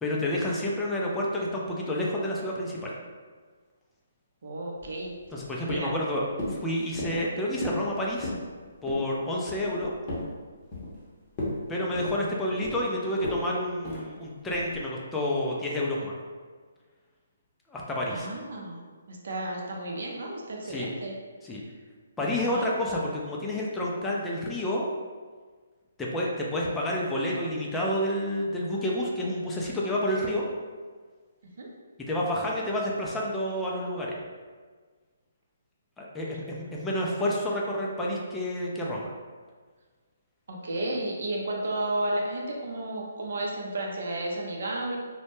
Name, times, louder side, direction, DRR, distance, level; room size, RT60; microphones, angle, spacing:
voice 1, 0.0-2.9 5.3-8.3 8.8-9.9 11.7-16.2 17.7-18.3 20.6-20.9 21.4-21.6 22.2-24.9 26.0-30.4 32.1-34.2 36.0-39.1, left 1 dB, 10° left, -4 dB, 0.3 m, -29 dB
voice 2, 4.4-5.1 5.6-5.9 18.1-18.8 19.1-21.1 22.4-22.6 31.6-31.7 40.5-45.0, right 1 dB, 65° right, -1 dB, 0.5 m, -32 dB
sound 1, 4.8-5.4 5.7-6.0 6.4-6.6 7.0-7.3 7.6-7.9 8.1-8.5 8.9-9.1 9.5-10.3 10.7-11.1 11.3-11.6 11.9-12.8 13.2-13.4 13.8-14.1 14.5-14.8, left 1 dB, 30° left, 0.7 m, -34 dB
2.1 x 2.0 x 2.9 m, 1.5 s
hypercardioid pair, 150°, 0 cm